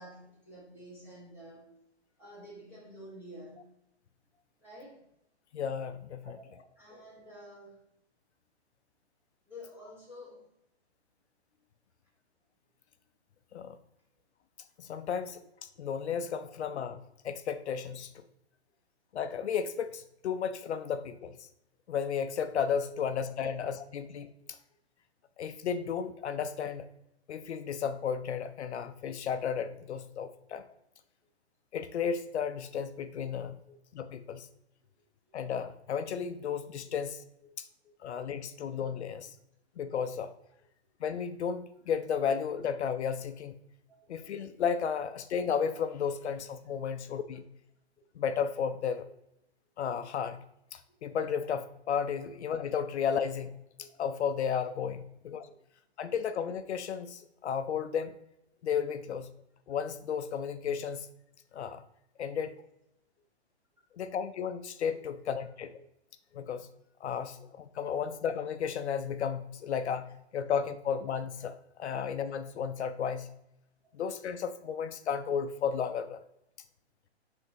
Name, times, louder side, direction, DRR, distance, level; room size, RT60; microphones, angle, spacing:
voice 1, 0.0-1.7 2.2-3.6 4.6-5.0 6.2-7.8 9.5-10.5 22.9-23.0 23.4-23.6 24.4-24.5 33.4-33.5 37.4-37.6 43.9-44.0 46.8-47.1 53.8-54.0 55.4-55.6 71.9-72.0, equal, 5° right, -6 dB, 1.8 m, -50 dB
voice 2, 5.5-6.3 13.5-13.8 14.8-15.4 15.8-17.0 17.2-18.2 19.1-21.3 21.9-24.6 25.4-26.8 27.3-30.6 31.7-33.6 33.9-34.5 35.3-37.2 38.0-39.3 39.8-40.3 41.0-43.5 44.1-47.4 48.2-49.0 49.8-50.4 50.7-53.6 54.0-55.5 56.0-58.1 58.6-59.3 59.7-61.1 61.5-61.8 62.2-62.5 63.9-65.8 66.3-66.7 67.0-73.3 73.9-76.2, left 7 dB, 80° left, 10 dB, 0.6 m, -33 dB
10.0 x 3.5 x 2.9 m, 0.80 s
hypercardioid pair, 155°, 33 cm